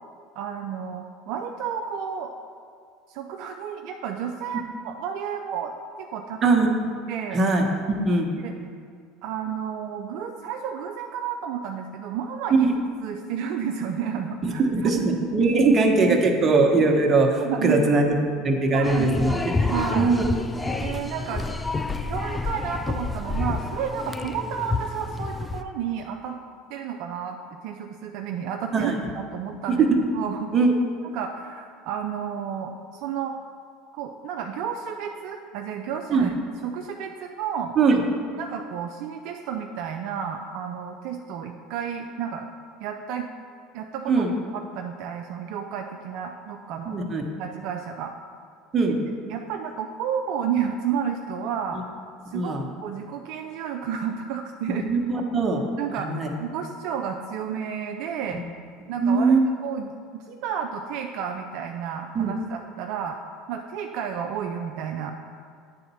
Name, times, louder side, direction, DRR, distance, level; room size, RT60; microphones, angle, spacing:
voice 1, 0.4-2.3 3.1-5.7 6.0-6.5 7.1-7.4 8.4-8.5 9.2-12.7 13.0-15.3 15.5-16.2 17.4-17.8 18.7-20.1 20.8-21.5 22.1-26.4 26.7-27.4 27.6-29.9 30.1-30.5 31.1-32.7 33.0-33.3 33.9-36.3 36.6-37.8 38.4-42.5 42.8-43.3 43.7-44.2 44.5-47.0 47.4-48.1 48.8-48.9 49.3-51.8 52.3-54.9 55.8-58.4 58.9-59.4 59.6-63.2 63.5-65.1, right 7 dB, 65° right, 3 dB, 0.4 m, -31 dB
voice 2, 7.3-8.3 12.5-12.7 14.4-15.0 15.3-18.1 18.4-19.3 19.7-20.2 28.7-29.0 29.7-30.0 30.5-30.7 36.1-36.3 37.8-38.0 44.1-44.3 46.9-47.2 48.7-49.0 52.3-52.7 54.7-55.6 56.0-56.3 58.3-58.4 59.0-59.4 62.1-62.3, right 3 dB, 35° right, 2 dB, 1.1 m, -21 dB
sound 1, 18.8-25.6, left 3 dB, 15° left, 0.4 m, -29 dB
9.1 x 4.0 x 5.6 m, 2.2 s
hypercardioid pair, 85°, 0 cm